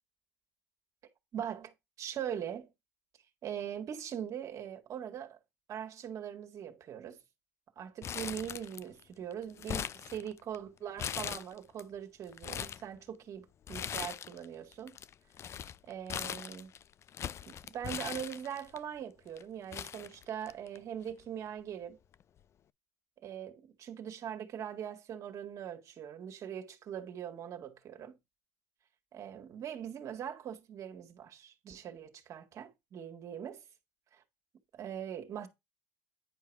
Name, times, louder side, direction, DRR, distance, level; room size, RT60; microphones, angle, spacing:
voice 1, 1.3-2.7 3.4-5.4 5.7-7.2 7.8-15.0 15.9-16.7 17.4-22.0 23.2-28.2 29.1-33.6 34.1-34.2 34.7-35.5, right 9 dB, 50° right, 2.0 m, -41 dB
Crumpling crinkling, 8.0-9.0 9.3-10.6 11.0-11.8 12.2-12.8 13.7-14.5 14.7-18.8 19.4-19.5 19.7-20.8 21.1-21.2 22.1-22.4, left 9 dB, 40° left, 0.5 m, -40 dB
10.0 x 4.8 x 4.7 m
supercardioid pair, 95°, 7 cm